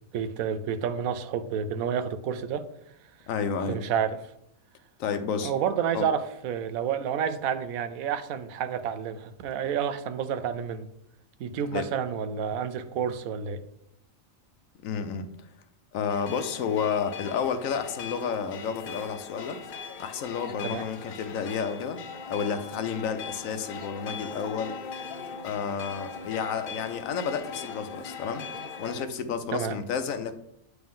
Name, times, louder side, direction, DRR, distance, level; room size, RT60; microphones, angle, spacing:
voice 1, 0.1-2.7 3.7-4.2 5.4-10.9 11.4-13.6 20.6-20.8 29.5-29.8, right 8 dB, 85° right, 11 dB, 1.0 m, -29 dB
voice 2, 3.3-3.8 5.0-5.5 5.9-6.1 11.7-11.9 14.8-15.3 15.9-19.6 20.0-22.0 22.3-24.8 25.4-28.5 28.8-30.3, left 6 dB, 80° left, 9 dB, 1.1 m, -31 dB
sound 1, 16.1-29.0, left 5 dB, 60° left, 0.6 m, -40 dB
9.0 x 3.4 x 3.7 m, 0.76 s
omnidirectional pair, 1.4 m